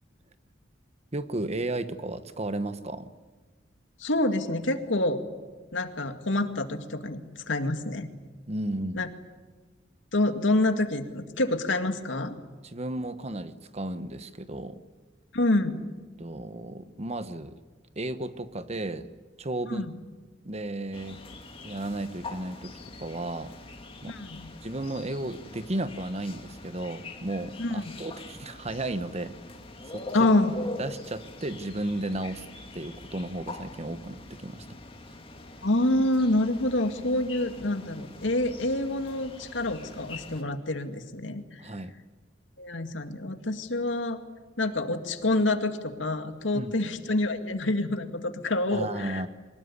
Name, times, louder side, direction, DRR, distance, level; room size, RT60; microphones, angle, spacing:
voice 1, 1.1-3.1 8.5-9.0 12.6-14.8 16.2-17.6 18.0-19.1 19.4-19.9 20.4-21.2 21.6-22.7 23.0-23.5 24.0-24.2 24.6-29.4 29.9-30.3 30.8-32.4 32.7-34.7 41.6-42.0 46.5-46.7 48.7-49.3, right 1 dB, 35° right, 12 dB, 1.1 m, -34 dB
voice 2, 4.0-5.2 5.7-8.1 8.9-9.1 10.1-12.4 15.3-15.9 19.7-19.9 24.1-24.5 27.6-27.9 30.1-30.5 35.6-41.8 42.6-44.2 44.6-49.2, left 2 dB, 80° left, 7 dB, 2.2 m, -27 dB
sound 1, 20.9-40.4, left 2 dB, 30° left, 2.5 m, -43 dB
24.0 x 20.5 x 9.9 m, 1.3 s
head